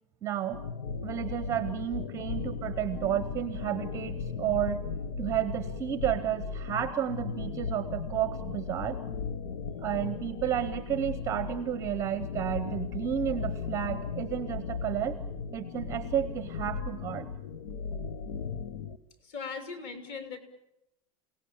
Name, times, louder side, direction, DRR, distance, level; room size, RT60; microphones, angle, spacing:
voice 1, 0.2-0.6 1.0-4.8 5.2-9.0 9.8-15.1 15.5-17.3, right 10 dB, 15° right, 11 dB, 0.8 m, -31 dB
sound 1, 0.5-19.0, left 5 dB, 80° left, 1.4 m, -36 dB
voice 2, 19.2-20.4, left 5 dB, 35° left, 7 dB, 3.2 m, -39 dB
28.0 x 18.0 x 8.8 m, 0.87 s
supercardioid pair, 180°, 18 cm